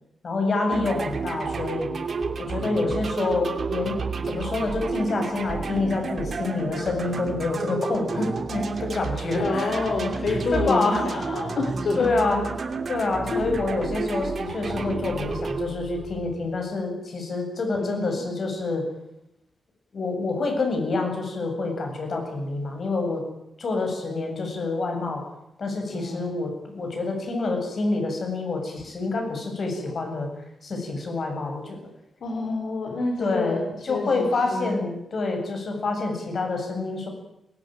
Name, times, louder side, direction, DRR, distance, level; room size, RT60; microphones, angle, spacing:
voice 1, 0.2-1.9 2.4-4.0 4.2-11.0 12.0-12.4 12.9-18.8 19.9-23.2 23.6-25.2 25.6-30.3 30.6-31.8 33.2-37.1, left 3 dB, 50° left, 3 dB, 8.0 m, -27 dB
sound 1, 0.7-16.6, right 4 dB, 50° right, 2.9 m, -31 dB
voice 2, 9.4-12.1 13.3-13.4 17.7-18.2 25.9-26.3 32.2-33.6 33.9-34.7, left 3 dB, 65° left, 2 dB, 3.9 m, -28 dB
22.0 x 19.5 x 9.2 m, 0.85 s
wide cardioid pair, 130°, 0 cm